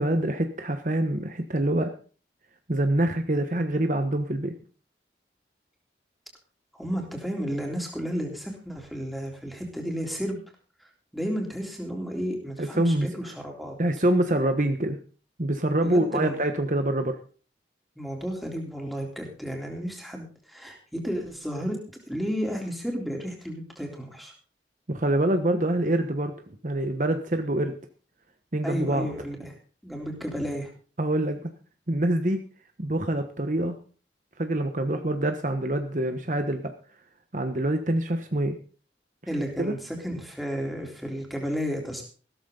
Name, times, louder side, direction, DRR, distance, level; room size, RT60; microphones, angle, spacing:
voice 1, 0.0-1.9 2.7-4.5 12.6-13.1 13.8-15.0 15.4-17.2 24.9-26.3 26.6-27.7 28.5-29.1 31.0-31.5 31.9-32.4 32.8-33.7 34.4-36.7 37.3-38.6 39.6-39.7, right 1 dB, 45° right, 7 dB, 1.2 m, -25 dB
voice 2, 6.7-10.4 10.8-13.8 15.8-16.4 17.9-21.8 22.1-24.3 28.6-29.6 29.8-30.7 39.3-42.0, equal, ahead, 0 dB, 3.6 m, -32 dB
15.5 x 13.5 x 3.9 m, 0.39 s
head